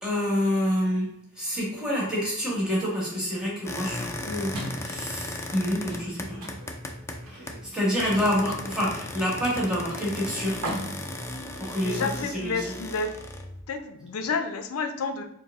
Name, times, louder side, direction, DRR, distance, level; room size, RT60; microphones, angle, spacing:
voice 1, 0.0-1.1 1.4-6.4 7.3-10.6 11.6-12.1 12.3-12.7, equal, 5° right, -6 dB, 1.3 m, -27 dB
sound 1, 3.7-7.7 8.0-13.6, left 2 dB, 10° left, 0.3 m, -36 dB
sound 2, 4.5-12.3, right 1 dB, 70° right, 0.9 m, -41 dB
voice 2, 11.8-13.1 13.7-15.2, left 4 dB, 70° left, 7 dB, 0.5 m, -30 dB
4.5 x 2.0 x 3.5 m, 0.76 s
head